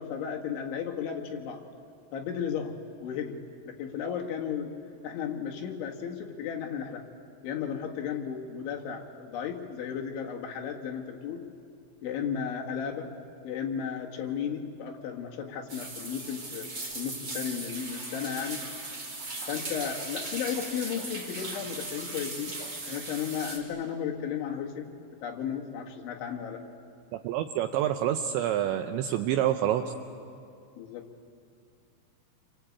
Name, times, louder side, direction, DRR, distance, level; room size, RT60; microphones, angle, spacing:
voice 1, 0.0-1.6 2.1-3.4 3.7-4.7 5.0-7.0 7.4-11.5 12.0-13.1 13.4-16.7 17.0-18.7 19.5-22.6 22.9-24.9 25.2-26.6 30.8-31.1, left 7 dB, 70° left, 1 dB, 3.9 m, -34 dB
sound 1, 15.7-23.6, right 2 dB, 25° right, 3.1 m, -38 dB
voice 2, 27.2-29.8, right 11 dB, 80° right, 6 dB, 2.7 m, -27 dB
28.5 x 24.0 x 8.6 m, 2.4 s
omnidirectional pair, 6.0 m